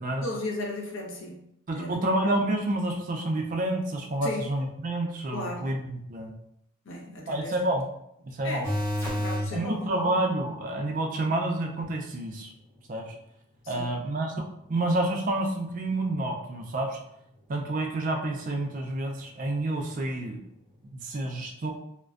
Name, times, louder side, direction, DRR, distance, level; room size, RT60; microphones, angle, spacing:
voice 1, 0.2-2.0 4.2-4.5 5.3-5.8 6.8-7.8 8.4-8.7 9.1-9.8 13.6-14.0, left 2 dB, 60° left, 0 dB, 0.5 m, -36 dB
voice 2, 1.7-6.3 7.3-7.8 8.2-8.7 9.5-12.5 12.9-13.1 13.7-14.3 14.7-17.0 17.5-20.4 20.9-21.7, right 1 dB, 40° right, 1 dB, 0.3 m, -29 dB
sound 1, 8.6-9.5 15.9-16.0, equal, 10° left, 0.5 m, -28 dB
2.5 x 2.1 x 2.3 m, 0.75 s
head